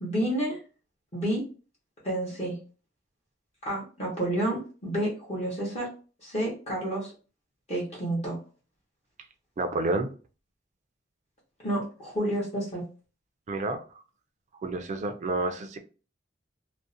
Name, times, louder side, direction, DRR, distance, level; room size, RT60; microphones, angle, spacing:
voice 1, 0.0-0.6 1.1-1.4 2.0-2.6 3.6-5.9 6.2-7.1 7.7-8.4 11.6-12.8, right 1 dB, 35° left, 0.9 m, -30 dB
voice 2, 9.6-10.1 13.5-13.8 14.6-15.8, right 2 dB, 40° right, 0.3 m, -29 dB
2.5 x 2.0 x 2.6 m
head